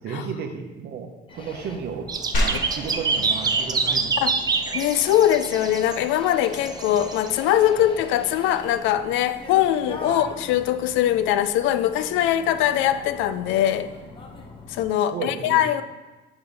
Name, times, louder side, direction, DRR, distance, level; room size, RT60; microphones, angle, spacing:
voice 1, 0.0-2.1 2.4-4.3 15.1-15.6, right 6 dB, 55° right, 5 dB, 0.9 m, -33 dB
sound 1, 1.3-14.9, left 2 dB, 25° left, 0.9 m, -41 dB
sound 2, 2.1-6.0 6.5-7.3, right 4 dB, 20° right, 0.4 m, -26 dB
sound 3, 2.3-12.3, equal, 55° left, 1.8 m, -36 dB
voice 2, 4.7-13.9 14.7-15.8, left 11 dB, 85° left, 12 dB, 0.5 m, -22 dB
6.2 x 5.3 x 5.3 m, 1.2 s
cardioid pair, 145°, 19 cm